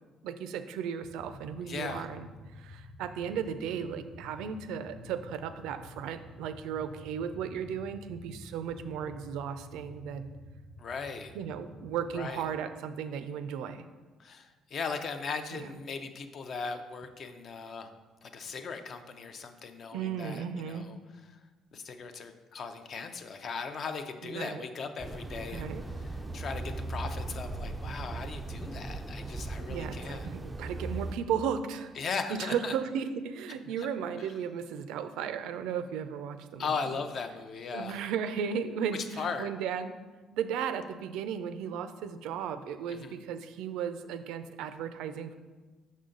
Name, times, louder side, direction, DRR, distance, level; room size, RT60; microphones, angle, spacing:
voice 1, 0.2-10.3 11.3-13.9 15.5-15.7 19.9-20.9 24.2-24.6 25.5-25.8 29.7-31.9 32.3-36.9 37.7-39.9 40.3-45.4, right 7 dB, 85° right, 10 dB, 0.4 m, -35 dB
sound 1, 1.0-12.5, left 1 dB, 85° left, 1.5 m, -50 dB
voice 2, 1.7-2.1 10.8-11.3 12.1-12.4 14.2-17.9 18.2-20.9 21.7-30.3 32.0-32.7 33.8-33.9 34.2-34.3 36.6-38.0 38.9-39.5 42.9-43.2, left 5 dB, 40° left, 8 dB, 0.5 m, -38 dB
sound 2, 25.0-31.1, right 2 dB, 10° right, 0.3 m, -38 dB
6.4 x 5.5 x 3.8 m, 1.3 s
cardioid pair, 140°, 0 cm